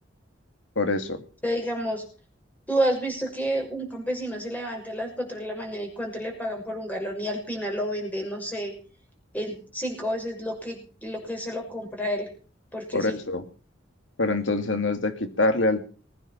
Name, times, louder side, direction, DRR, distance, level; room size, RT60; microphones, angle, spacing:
voice 1, 0.8-1.2 12.9-13.4 14.2-15.8, left 2 dB, 90° left, 8 dB, 2.5 m, -25 dB
voice 2, 1.4-2.0 2.7-8.7 9.3-12.3 12.7-13.2, equal, 10° left, 2 dB, 6.3 m, -30 dB
20.5 x 9.8 x 5.8 m, 0.40 s
head